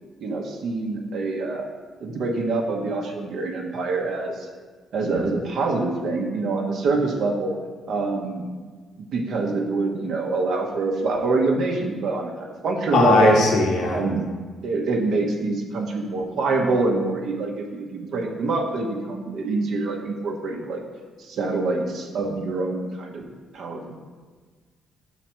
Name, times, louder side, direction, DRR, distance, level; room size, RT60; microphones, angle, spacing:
voice 1, 0.2-1.7 2.0-4.5 4.9-7.6 7.9-8.4 9.0-13.4 13.8-14.2 14.6-20.8 21.2-23.2 23.5-24.0, right 3 dB, 70° right, 1 dB, 0.9 m, -25 dB
voice 2, 12.9-14.0, left 3 dB, 75° left, -2 dB, 1.1 m, -18 dB
6.1 x 4.1 x 4.4 m, 1.5 s
cardioid pair, 90°, 0 cm